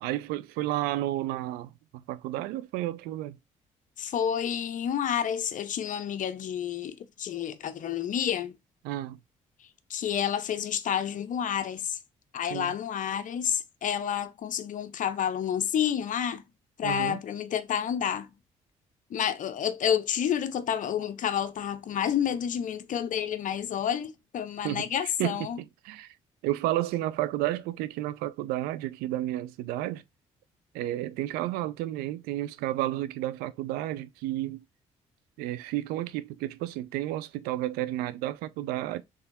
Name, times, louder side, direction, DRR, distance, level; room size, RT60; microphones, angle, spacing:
voice 1, 0.0-3.4 8.8-9.2 12.5-12.8 16.8-17.2 24.6-26.1 26.4-30.0 30.7-34.6 35.4-39.0, right 15 dB, 80° right, 0.4 m, -32 dB
voice 2, 4.0-8.5 9.9-12.0 12.3-16.4 16.8-18.3 19.1-25.6, left 9 dB, 60° left, 0.7 m, -29 dB
3.6 x 3.4 x 4.1 m
hypercardioid pair, 55°, 15 cm